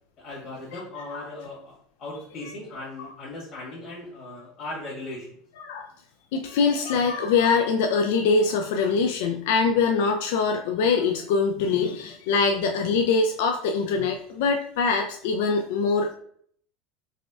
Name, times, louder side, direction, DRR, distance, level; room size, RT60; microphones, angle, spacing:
voice 1, 0.2-5.4, left 2 dB, 55° left, -5 dB, 1.5 m, -38 dB
voice 2, 6.3-16.1, left 4 dB, 70° left, 4 dB, 0.3 m, -23 dB
4.0 x 2.4 x 2.4 m, 0.62 s
hypercardioid pair, 80°, 0 cm